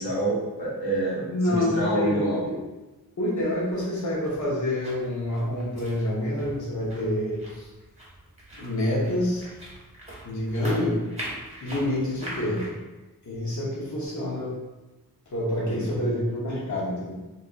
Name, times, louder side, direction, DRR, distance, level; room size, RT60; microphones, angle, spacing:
voice 1, 0.0-2.4 15.6-15.9, right 1 dB, 80° left, -6 dB, 1.1 m, -27 dB
voice 2, 1.3-2.6 3.2-7.7 8.5-9.4 10.2-11.0 11.6-12.7 13.3-14.5 15.3-17.1, left 1 dB, 50° left, -6 dB, 0.9 m, -27 dB
sound 1, 3.4-12.7, equal, 15° right, 1.1 m, -42 dB
4.1 x 2.4 x 2.4 m, 1.1 s
wide cardioid pair, 90°, 37 cm